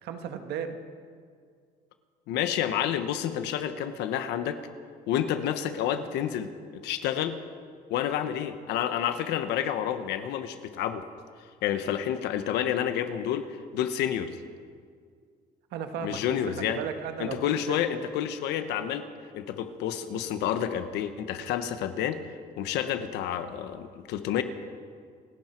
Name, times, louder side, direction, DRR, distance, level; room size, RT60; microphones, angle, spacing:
voice 1, 0.0-0.8 15.7-17.8, right 7 dB, 80° right, 6 dB, 1.6 m, -35 dB
voice 2, 2.3-4.6 5.1-6.5 6.8-7.4 7.9-11.0 11.6-13.5 13.7-14.4 16.0-16.8 17.2-19.0 19.3-22.2 22.6-24.4, left 10 dB, 90° left, 9 dB, 1.2 m, -29 dB
28.5 x 11.0 x 4.5 m, 2.1 s
cardioid pair, 110°, 17 cm